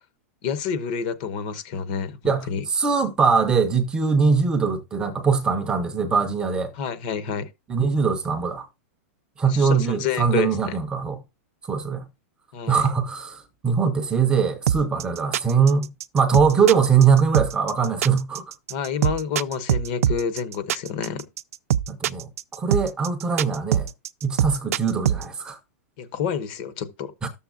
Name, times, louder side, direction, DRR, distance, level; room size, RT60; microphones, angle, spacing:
voice 1, 0.4-2.6 6.7-7.5 9.4-10.8 12.5-12.8 18.7-21.3 26.0-27.1, left 7 dB, 35° left, 0.7 m, -29 dB
voice 2, 2.2-6.7 7.7-8.7 9.4-11.2 11.6-12.1 12.7-18.4 21.9-23.9 24.2-25.6 27.2-27.3, right 5 dB, 10° right, 0.5 m, -22 dB
sound 1, 14.7-25.2, right 10 dB, 75° right, 0.4 m, -23 dB
12.0 x 7.0 x 2.4 m
supercardioid pair, 175°, 8 cm